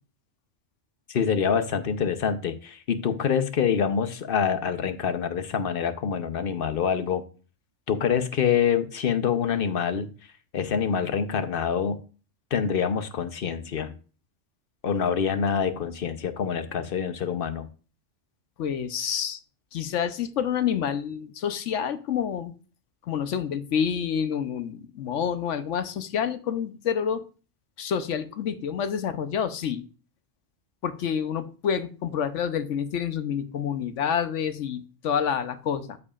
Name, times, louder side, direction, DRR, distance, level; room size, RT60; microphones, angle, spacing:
voice 1, 1.1-7.2 7.9-10.1 10.5-12.0 12.5-13.9 14.8-17.7, left 7 dB, 55° left, 10 dB, 0.9 m, -26 dB
voice 2, 18.6-19.4 19.7-22.5 23.0-27.2 27.8-29.8 30.8-36.0, left 8 dB, 80° left, 10 dB, 1.1 m, -28 dB
13.5 x 4.8 x 2.4 m, 0.36 s
omnidirectional pair, 1.2 m